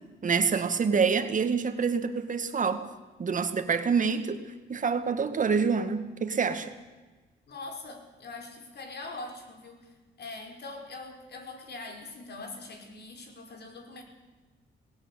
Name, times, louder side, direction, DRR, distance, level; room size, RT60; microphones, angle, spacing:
voice 1, 0.2-2.8 3.2-4.4 4.7-6.7, right 5 dB, 40° right, 8 dB, 2.0 m, -26 dB
voice 2, 7.5-14.0, left 3 dB, 55° left, 4 dB, 5.1 m, -42 dB
18.5 x 17.0 x 8.5 m, 1.2 s
cardioid pair, 90°, 20 cm